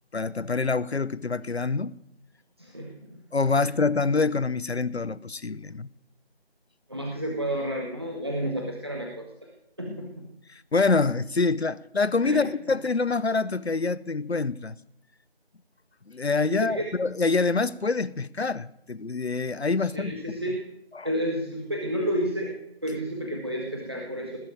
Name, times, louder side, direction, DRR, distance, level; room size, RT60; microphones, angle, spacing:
voice 1, 0.1-2.0 3.3-5.9 9.9-10.0 10.5-14.8 16.1-20.1 20.9-21.1, left 4 dB, 75° left, 0.7 m, -26 dB
voice 2, 2.6-3.1 3.5-3.6 6.9-9.5 9.8-10.3 12.2-12.4 16.5-16.8 19.8-20.6 21.0-24.4, equal, 25° right, 1.5 m, -31 dB
19.5 x 7.5 x 8.9 m
figure-of-eight pair, 170°, 32 cm